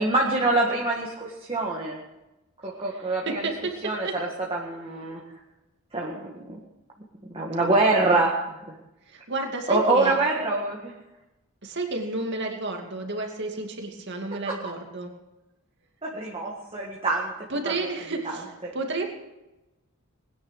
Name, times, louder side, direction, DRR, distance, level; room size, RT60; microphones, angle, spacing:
voice 1, 0.0-2.0 2.6-3.5 3.8-5.2 5.9-6.6 7.3-8.6 9.7-10.9 14.5-14.6 16.0-17.3 17.6-17.7 18.3-18.7, right 2 dB, 25° right, -3 dB, 1.9 m, -25 dB
voice 2, 3.3-4.2 9.0-10.2 11.6-15.1 17.5-19.1, right 2 dB, 50° right, 3 dB, 2.5 m, -31 dB
21.0 x 10.0 x 6.4 m, 0.99 s
head